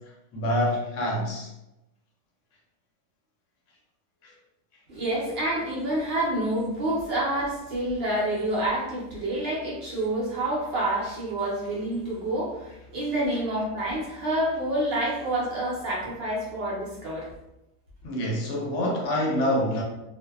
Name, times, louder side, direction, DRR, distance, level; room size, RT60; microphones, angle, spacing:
voice 1, 0.3-1.5 18.0-19.8, equal, 70° left, -1 dB, 0.9 m, -26 dB
voice 2, 4.9-17.3, right 1 dB, 55° right, -5 dB, 0.8 m, -28 dB
2.6 x 2.1 x 2.2 m, 0.91 s
omnidirectional pair, 1.4 m